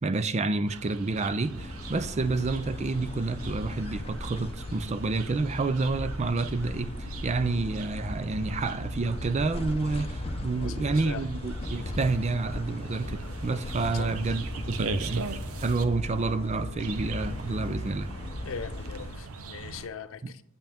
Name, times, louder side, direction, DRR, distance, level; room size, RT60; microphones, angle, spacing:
voice 1, 0.0-18.1, right 3 dB, 30° right, 0.5 m, -29 dB
sound 1, 0.7-15.8 16.8-19.9, right 4 dB, 75° right, 0.6 m, -41 dB
sound 2, 1.6-19.2, left 2 dB, 30° left, 0.6 m, -37 dB
voice 2, 10.5-11.3 13.9-14.2 18.4-20.4, left 6 dB, 65° left, 0.5 m, -40 dB
sound 3, 11.6-17.9, right 2 dB, 90° right, 1.4 m, -49 dB
8.8 x 8.1 x 3.5 m
head